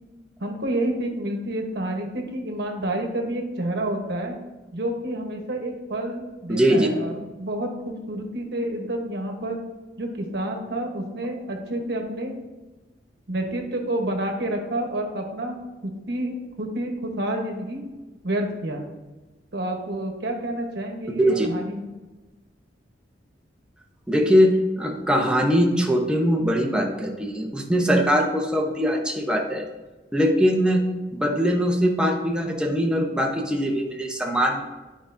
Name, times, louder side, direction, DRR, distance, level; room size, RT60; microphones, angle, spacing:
voice 1, 0.4-4.4 4.7-9.6 10.0-12.3 13.3-15.6 16.1-17.8 18.2-18.8 19.5-21.9, right 1 dB, 65° right, 2 dB, 1.1 m, -29 dB
voice 2, 6.5-6.9 21.2-21.5 24.1-29.7 30.1-30.8 31.1-34.6, equal, 5° right, 1 dB, 0.7 m, -21 dB
9.5 x 4.9 x 2.6 m, 1.2 s
head